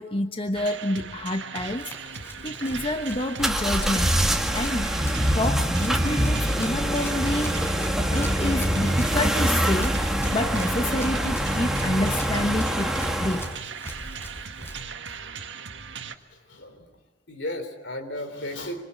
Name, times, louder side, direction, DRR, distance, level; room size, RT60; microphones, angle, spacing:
voice 1, 0.0-1.9 2.4-4.1 4.5-4.9 5.3-7.8 8.1-10.0 10.3-13.5, left 1 dB, 30° left, 6 dB, 1.1 m, -28 dB
sound 1, 0.5-16.1, right 6 dB, 75° right, 1.8 m, -38 dB
Run, 1.6-14.8, equal, 15° left, 5.5 m, -41 dB
sound 2, 3.4-13.6, equal, ahead, 2.0 m, -25 dB
voice 2, 16.3-16.9 17.3-18.8, left 1 dB, 70° left, 7 dB, 3.8 m, -34 dB
26.0 x 26.0 x 8.5 m, 1.1 s
head